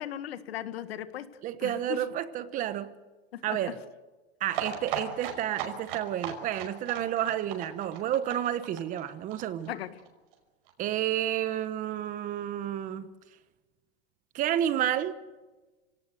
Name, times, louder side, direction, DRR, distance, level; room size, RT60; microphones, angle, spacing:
voice 1, 0.0-1.3 1.6-2.0 3.3-3.7 9.7-10.0, left 11 dB, 75° left, 1.7 m, -37 dB
voice 2, 1.4-2.9 3.4-3.8 4.4-9.7 10.8-13.1 14.3-15.2, right 11 dB, 25° right, 1.1 m, -30 dB
sound 1, 4.5-10.1 10.3-10.4 10.7-10.8 11.0-11.1, right 8 dB, 60° right, 5.5 m, -37 dB
27.0 x 18.0 x 8.2 m
supercardioid pair, 150°, 31 cm